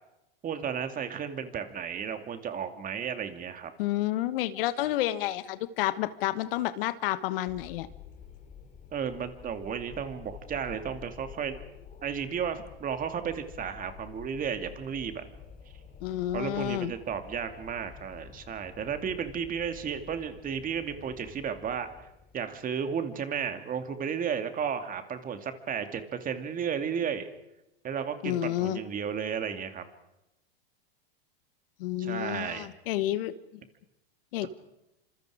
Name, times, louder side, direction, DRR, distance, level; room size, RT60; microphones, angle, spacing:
voice 1, 0.4-3.7 8.9-11.6 12.0-15.2 16.3-21.9 22.3-27.3 27.8-29.8 32.0-32.7 34.4-34.5, right 7 dB, 25° right, 8 dB, 2.5 m, -33 dB
voice 2, 3.8-7.9 16.0-16.9 28.2-28.8 31.8-33.3 34.3-34.5, left 14 dB, 65° left, 13 dB, 1.4 m, -30 dB
Wind, 7.5-22.8, left 7 dB, 25° left, 3.2 m, -49 dB
27.5 x 26.5 x 4.9 m, 0.91 s
hypercardioid pair, 115°, 31 cm